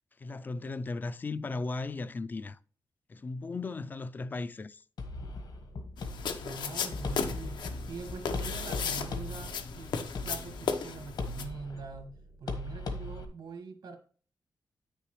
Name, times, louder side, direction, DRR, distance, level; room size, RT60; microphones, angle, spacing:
voice 1, 0.2-2.6 3.1-4.8, left 3 dB, 25° left, 0.3 m, -36 dB
sound 1, 5.0-13.2, left 2 dB, 70° left, 1.4 m, -39 dB
sound 2, 6.0-11.5, left 6 dB, 90° left, 0.9 m, -36 dB
voice 2, 6.4-14.0, right 4 dB, 75° right, 1.6 m, -44 dB
9.2 x 6.8 x 3.1 m
wide cardioid pair, 165°, 7 cm